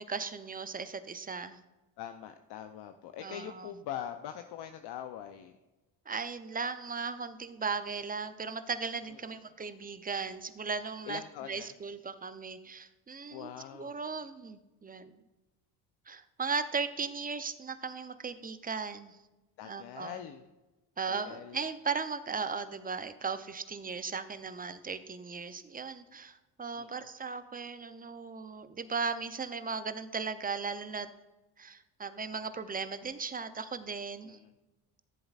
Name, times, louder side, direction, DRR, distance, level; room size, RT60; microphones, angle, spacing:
voice 1, 0.0-1.6 3.2-3.7 6.1-15.2 16.1-19.2 19.6-20.2 21.0-31.1 31.6-34.4, right 5 dB, 20° right, 11 dB, 0.6 m, -37 dB
voice 2, 2.0-5.5 11.1-11.7 13.3-14.0 19.6-20.5 21.1-21.6 26.8-26.9 34.2-34.5, left 10 dB, 65° left, 8 dB, 0.7 m, -43 dB
14.5 x 7.7 x 2.4 m, 1.1 s
supercardioid pair, 70°, 43 cm